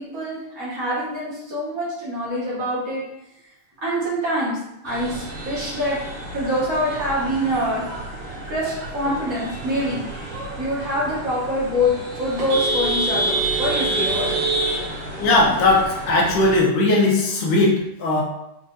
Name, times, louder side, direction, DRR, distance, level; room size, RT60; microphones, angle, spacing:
voice 1, 0.0-3.0 3.8-4.6 4.8-6.0 6.3-7.8 8.5-10.0 10.6-14.4, equal, 45° right, -7 dB, 1.7 m, -25 dB
sound 1, 4.9-16.6, right 2 dB, 70° right, 1.9 m, -28 dB
voice 2, 15.2-18.2, left 2 dB, 80° left, -2 dB, 1.7 m, -18 dB
5.0 x 3.9 x 2.4 m, 0.84 s
omnidirectional pair, 2.3 m